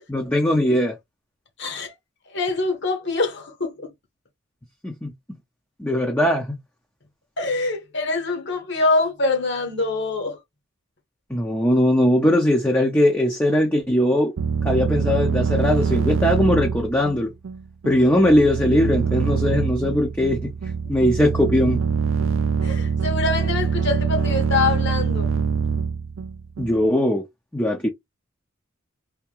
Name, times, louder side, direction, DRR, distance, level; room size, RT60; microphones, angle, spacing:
voice 1, 0.1-1.0 4.8-5.1 5.8-6.5 11.3-14.3 14.6-17.3 17.9-20.5 20.9-21.8 26.6-27.2 27.5-27.9, left 1 dB, 10° left, 0.6 m, -20 dB
voice 2, 1.6-1.9 2.3-3.9 7.4-10.4 22.6-25.3, left 3 dB, 60° left, 1.3 m, -24 dB
sound 1, 14.4-26.9, right 6 dB, 75° right, 0.4 m, -24 dB
3.5 x 2.8 x 2.9 m
head